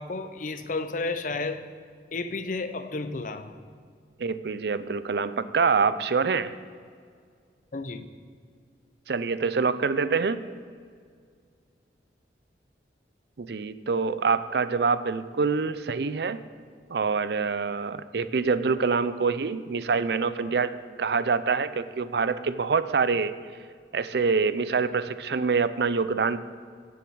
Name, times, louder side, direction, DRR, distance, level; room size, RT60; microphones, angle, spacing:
voice 1, 0.0-1.6 2.1-3.5 7.7-8.1, left 3 dB, 45° left, 9 dB, 0.7 m, -32 dB
voice 2, 4.2-6.5 9.1-10.4 13.4-16.4 16.9-20.7 21.0-23.3 23.9-26.4, right 5 dB, 65° right, 14 dB, 0.5 m, -25 dB
17.0 x 7.2 x 4.7 m, 2.1 s
head